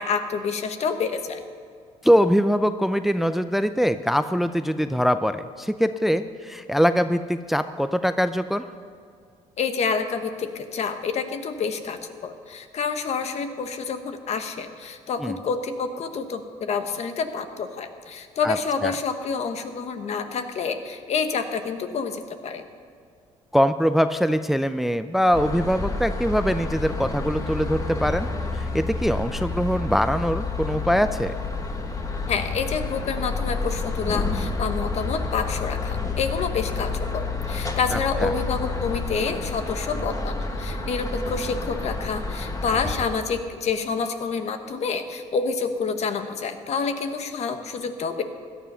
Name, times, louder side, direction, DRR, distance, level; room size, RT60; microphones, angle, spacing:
voice 1, 0.0-1.4 9.6-22.7 32.3-48.2, left 5 dB, 55° left, 8 dB, 1.3 m, -28 dB
voice 2, 2.0-8.6 15.2-15.3 18.4-18.6 18.8-18.9 23.5-28.3 28.5-31.3 37.9-38.3, equal, ahead, 11 dB, 0.5 m, -22 dB
sound 1, 25.3-43.1, left 3 dB, 25° left, 1.7 m, -29 dB
16.5 x 11.5 x 5.6 m, 2.3 s
cardioid pair, 90°, 13 cm